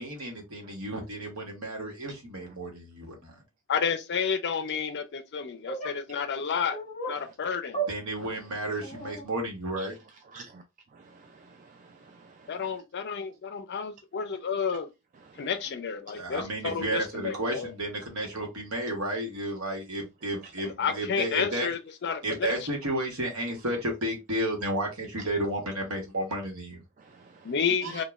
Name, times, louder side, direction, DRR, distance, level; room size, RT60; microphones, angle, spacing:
voice 1, 0.0-3.1 7.9-10.0 16.1-21.7 22.2-26.8, right 1 dB, 75° right, 1.1 m, -32 dB
voice 2, 3.7-6.8 7.1-7.8 12.5-14.9 15.4-17.7 20.6-22.5 27.4-28.0, left 6 dB, 50° left, 0.5 m, -31 dB
sound 1, 5.7-5.9 6.7-7.2 7.7-7.9 8.8-9.2, right 3 dB, 35° left, 0.8 m, -33 dB
voice 3, 10.3-10.6 10.9-12.8 15.3-15.5 27.0-27.5 27.8-28.0, right 4 dB, 35° right, 0.3 m, -48 dB
3.1 x 2.2 x 2.3 m
head